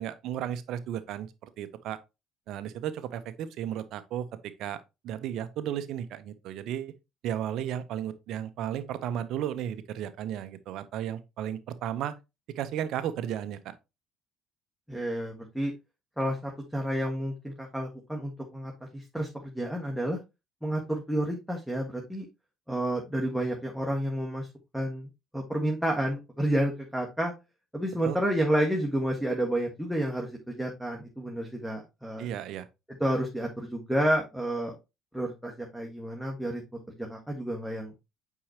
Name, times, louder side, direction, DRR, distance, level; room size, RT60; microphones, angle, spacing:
voice 1, 0.0-2.0 2.5-6.9 7.2-12.1 12.6-13.8 28.0-28.2 32.2-32.7, right 10 dB, 55° right, 0.7 m, -34 dB
voice 2, 14.9-15.7 16.2-20.2 20.6-22.3 22.7-24.5 24.7-25.1 25.3-27.3 27.7-32.3 33.0-34.8 35.1-36.6 37.0-37.9, right 1 dB, ahead, 1.5 m, -30 dB
8.5 x 4.7 x 2.8 m
figure-of-eight pair, 55°, 0 cm